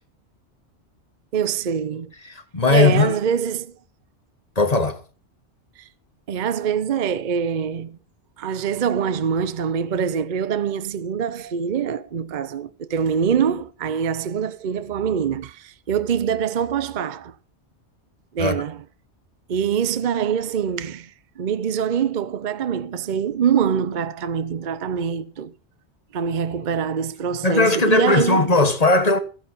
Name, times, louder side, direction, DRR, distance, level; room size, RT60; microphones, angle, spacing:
voice 1, 1.3-2.1 2.7-3.7 5.8-5.9 6.3-8.0 8.4-17.3 18.3-18.8 19.5-25.5 26.1-28.6, right 7 dB, 50° right, 0.8 m, -24 dB
voice 2, 2.5-3.1 4.6-5.0 18.4-18.5 27.4-29.2, left 3 dB, 35° left, 1.3 m, -17 dB
14.0 x 9.1 x 5.6 m
omnidirectional pair, 1.2 m